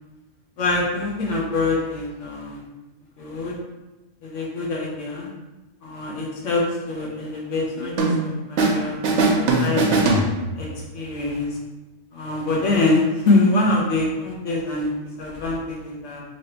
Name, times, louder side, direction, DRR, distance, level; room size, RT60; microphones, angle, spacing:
voice 1, 0.6-2.6 3.2-3.6 4.2-5.3 5.8-9.8 10.6-10.7 10.9-11.5 12.1-14.9 15.2-16.2, left 2 dB, 75° left, -3 dB, 1.3 m, -24 dB
sound 1, 8.0-8.8 9.0-10.8, right 2 dB, 65° right, 0.9 m, -20 dB
3.3 x 2.7 x 4.3 m, 1.1 s
omnidirectional pair, 1.3 m